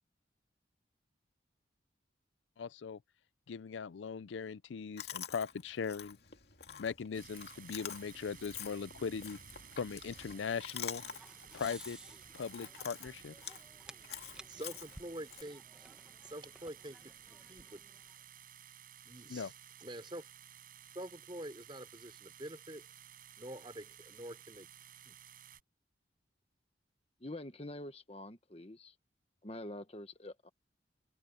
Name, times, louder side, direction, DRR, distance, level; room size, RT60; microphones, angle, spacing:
voice 1, 2.6-3.0 3.5-6.2 6.7-9.4 9.8-11.0 11.5-12.0 12.3-13.3 19.3-19.5, left 6 dB, 85° left, 0.4 m, -39 dB
Chewing mastication, 5.0-15.4, left 8 dB, 60° left, 2.6 m, -48 dB
sound 1, 7.1-25.6, right 10 dB, 50° right, 5.8 m, -56 dB
sound 2, 9.6-18.2, right 1 dB, 5° right, 1.5 m, -58 dB
voice 2, 14.5-16.0 16.2-17.1 17.4-17.8 19.0-19.5 19.8-20.3 20.9-22.9 23.4-24.7 25.1-25.2, right 1 dB, 25° right, 4.2 m, -47 dB
voice 3, 27.2-28.9 29.4-30.5, left 1 dB, 35° left, 1.2 m, -46 dB
open air
head